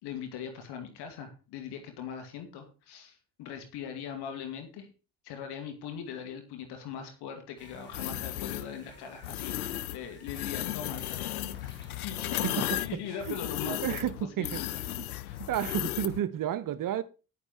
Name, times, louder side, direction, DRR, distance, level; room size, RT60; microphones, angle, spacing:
voice 1, 0.0-4.9 5.2-9.6 9.9-12.4 12.8-14.0 14.4-14.8 15.2-15.4, left 7 dB, 65° left, 2.3 m, -41 dB
sound 1, 7.6-13.3, left 2 dB, 25° left, 6.0 m, -52 dB
sound 2, 7.9-8.7 9.2-10.0 10.3-16.2, left 14 dB, 85° left, 0.6 m, -35 dB
voice 2, 12.3-12.8 13.3-13.4 13.6-14.6 14.9-15.0 15.5-17.0, right 11 dB, 50° right, 0.8 m, -31 dB
9.8 x 9.8 x 4.5 m
figure-of-eight pair, 40°, 42 cm